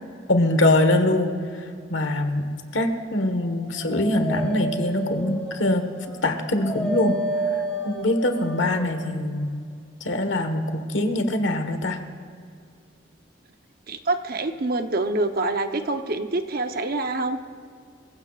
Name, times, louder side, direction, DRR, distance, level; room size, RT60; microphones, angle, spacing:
voice 1, 0.3-1.3 1.9-2.4 2.7-5.9 6.2-7.2 7.8-9.5 10.0-12.0, left 1 dB, 75° left, 7 dB, 1.4 m, -23 dB
Dog, 3.3-8.9, right 1 dB, 5° left, 2.5 m, -31 dB
voice 2, 13.9-17.4, right 2 dB, 50° right, 7 dB, 0.9 m, -26 dB
25.0 x 16.0 x 2.5 m, 2.3 s
head